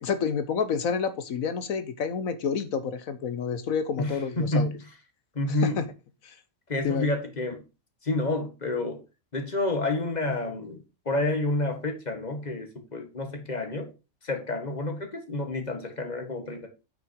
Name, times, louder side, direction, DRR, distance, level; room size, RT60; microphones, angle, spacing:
voice 1, 0.0-4.7 5.6-5.8 6.2-6.3 6.8-7.1, left 6 dB, 75° left, 1.4 m, -29 dB
voice 2, 4.0-4.7 5.3-5.9 6.7-7.6 8.0-9.0 9.3-13.9 14.2-16.7, left 2 dB, 30° left, 1.8 m, -29 dB
8.7 x 6.0 x 4.6 m
omnidirectional pair, 1.5 m